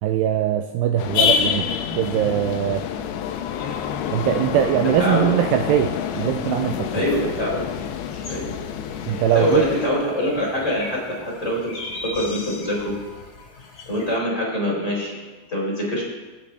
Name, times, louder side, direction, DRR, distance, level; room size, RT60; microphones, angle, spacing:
voice 1, 0.0-2.9 4.1-7.1 9.1-9.6, right 11 dB, 85° right, 6 dB, 2.4 m, -22 dB
sound 1, 1.0-9.9, left 8 dB, 75° left, 2.7 m, -27 dB
voice 2, 4.8-5.3 6.9-7.7 8.3-8.5 9.3-13.0 13.9-15.2 15.5-16.0, left 1 dB, 15° left, -5 dB, 3.6 m, -24 dB
sound 2, 7.1-14.2, left 2 dB, 50° left, 3.5 m, -40 dB
25.5 x 8.7 x 3.3 m, 1.3 s
omnidirectional pair, 5.3 m